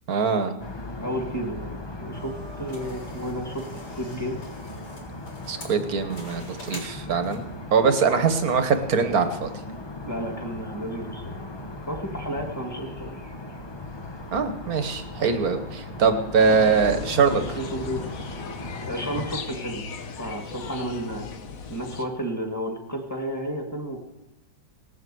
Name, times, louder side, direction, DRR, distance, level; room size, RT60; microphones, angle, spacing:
voice 1, 0.1-0.5 5.5-9.5 14.3-17.4, right 5 dB, 55° right, 8 dB, 1.5 m, -22 dB
sound 1, 0.6-19.4, left 2 dB, 35° left, 0.4 m, -38 dB
voice 2, 1.0-4.4 8.1-8.3 10.1-11.4 11.9-13.2 17.6-18.0 18.8-19.8 20.2-21.3 21.7-24.0, equal, 10° left, 2 dB, 1.9 m, -32 dB
sound 2, 2.1-7.6, left 1 dB, 80° left, 4.7 m, -44 dB
sound 3, 16.4-22.0, left 5 dB, 55° left, 1.2 m, -37 dB
19.0 x 7.7 x 7.8 m, 0.94 s
omnidirectional pair, 2.1 m